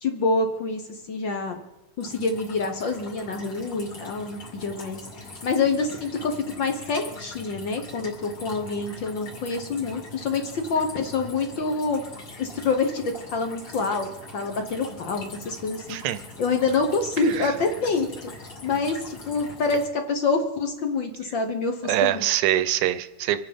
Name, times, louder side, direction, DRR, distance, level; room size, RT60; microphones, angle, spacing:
voice 1, 0.0-1.6 2.0-12.0 12.4-14.1 14.3-16.0 16.4-22.3, left 4 dB, 60° left, 5 dB, 1.2 m, -27 dB
sound 1, 2.0-19.9, left 2 dB, 45° left, 3.2 m, -42 dB
voice 2, 21.9-23.4, right 13 dB, 85° right, 13 dB, 2.2 m, -23 dB
25.0 x 9.2 x 5.2 m, 1.0 s
omnidirectional pair, 3.5 m